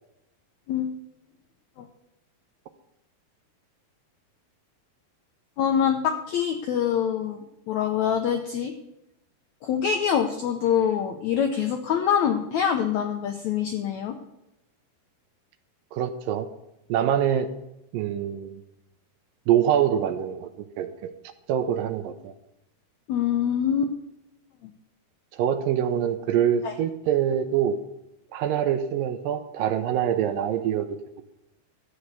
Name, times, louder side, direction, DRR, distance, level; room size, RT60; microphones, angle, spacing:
voice 1, 5.6-8.7 9.6-14.2 23.1-23.9 26.6-26.7, left 8 dB, 85° left, 5 dB, 1.6 m, -25 dB
voice 2, 15.9-16.5 16.9-17.5 17.9-18.6 19.5-20.5 20.8-21.1 21.5-22.3 25.3-27.8 28.3-30.9, right 9 dB, 80° right, 9 dB, 2.2 m, -24 dB
13.0 x 8.2 x 6.7 m, 0.87 s
omnidirectional pair, 4.3 m